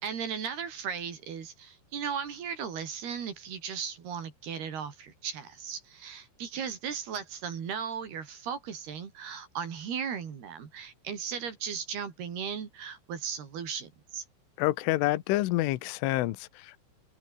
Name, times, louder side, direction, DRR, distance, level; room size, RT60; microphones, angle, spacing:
voice 1, 0.0-14.2, right 7 dB, 55° right, 4.9 m, -36 dB
voice 2, 14.6-16.8, left 17 dB, 80° left, 3.6 m, -28 dB
open air
omnidirectional pair, 5.8 m